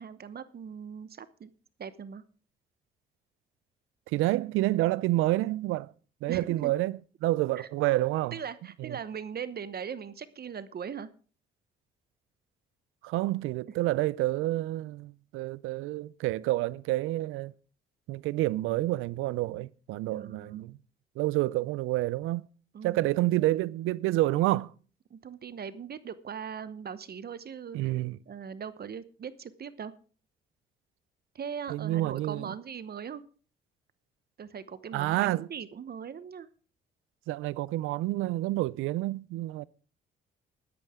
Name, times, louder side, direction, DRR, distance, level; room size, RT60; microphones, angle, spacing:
voice 1, 0.0-1.5 1.8-2.2 6.3-6.7 7.6-7.7 8.3-11.1 20.1-20.6 22.7-23.1 25.1-27.8 28.3-29.9 31.3-33.2 34.4-36.5, right 7 dB, 50° right, 0.9 m, -40 dB
voice 2, 4.1-5.9 6.2-8.4 8.8-9.0 13.0-17.5 18.1-20.8 21.2-22.5 22.8-24.7 27.7-28.2 31.7-32.5 34.9-35.5 37.3-39.7, right 17 dB, 80° right, 0.5 m, -28 dB
14.0 x 12.0 x 3.6 m
supercardioid pair, 60°, 21 cm